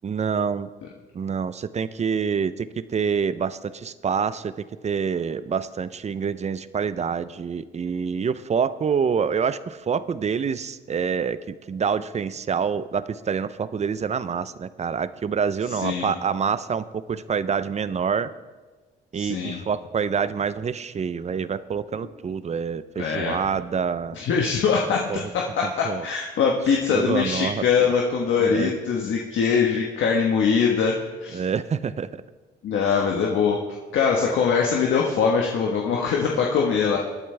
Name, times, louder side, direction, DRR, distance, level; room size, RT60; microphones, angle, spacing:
voice 1, 0.0-0.7 1.1-4.5 4.8-11.4 11.7-18.3 19.1-24.2 24.9-25.2 25.8-26.1 26.9-27.6 28.4-28.7 31.3-32.1, right 6 dB, 35° right, 15 dB, 0.6 m, -26 dB
voice 2, 15.8-16.1 19.1-19.6 23.0-23.5 24.1-25.1 25.3-31.4 32.6-33.6 33.9-37.0, left 6 dB, 75° left, -1 dB, 1.3 m, -22 dB
22.0 x 9.0 x 3.4 m, 1.3 s
cardioid pair, 90°, 20 cm